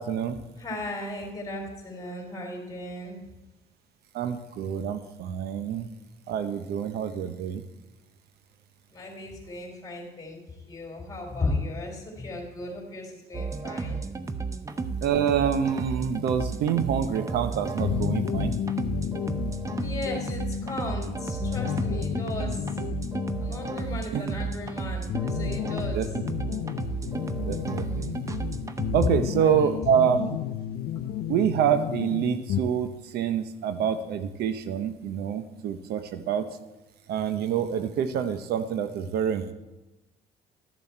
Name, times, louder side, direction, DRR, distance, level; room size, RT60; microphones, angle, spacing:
voice 1, 0.0-0.4 4.1-5.9 6.3-7.6 15.0-18.5 24.1-24.3 25.9-26.1 27.4-28.2 28.9-30.4 31.3-36.5 37.1-39.5, right 8 dB, 70° right, 10 dB, 0.7 m, -27 dB
voice 2, 0.6-3.2 8.9-10.4 10.7-14.0 19.8-22.6 23.4-26.1 29.0-29.7, left 2 dB, 20° left, 1 dB, 3.4 m, -35 dB
sound 1, 13.3-29.1, right 4 dB, 20° right, 0.6 m, -33 dB
sound 2, 17.8-32.6, left 10 dB, 60° left, 0.5 m, -32 dB
13.0 x 7.2 x 4.4 m, 1.0 s
cardioid pair, 110°, 17 cm